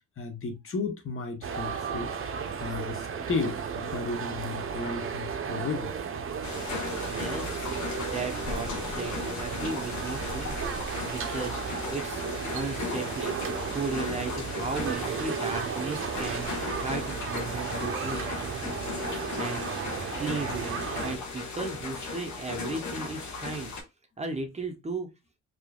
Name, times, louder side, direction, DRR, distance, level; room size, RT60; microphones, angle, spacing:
voice 1, 0.2-2.1 2.6-5.9, left 4 dB, 45° left, 1.1 m, -34 dB
sound 1, 1.4-21.2, right 6 dB, 45° right, 0.7 m, -34 dB
sound 2, 6.4-23.8, left 4 dB, 75° left, 1.5 m, -36 dB
voice 2, 7.1-7.6 8.0-10.6 11.0-11.6 11.9-12.2 12.5-13.4 13.7-18.9 19.4-19.6 20.2-23.7 24.2-25.1, right 3 dB, 20° right, 1.0 m, -35 dB
4.7 x 3.0 x 2.3 m
cardioid pair, 90°, 30 cm